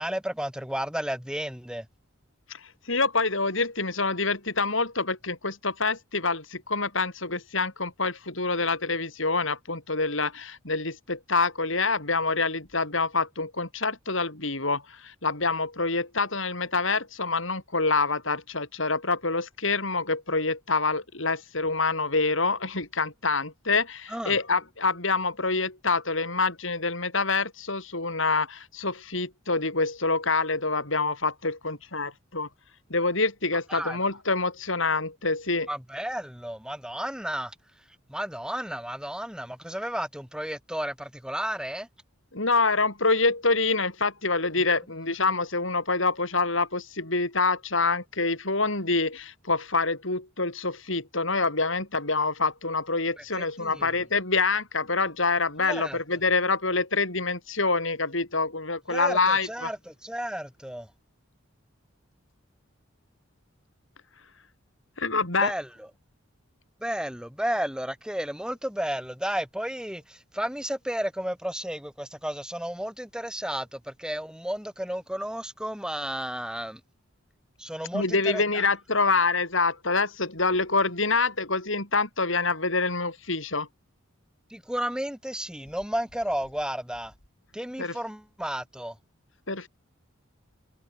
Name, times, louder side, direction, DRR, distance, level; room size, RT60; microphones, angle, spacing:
voice 1, 0.0-1.8 24.1-24.3 33.7-34.0 35.7-37.5 38.1-41.9 53.4-53.9 55.6-56.0 58.9-60.9 65.4-65.7 66.8-76.8 77.6-78.6 84.5-87.1 87.5-88.9, equal, 5° right, 7.2 m, -32 dB
voice 2, 2.5-32.5 32.9-35.7 42.3-59.7 65.0-65.5 77.9-83.7 87.8-88.0 89.5-89.7, left 3 dB, 75° left, 7.3 m, -26 dB
head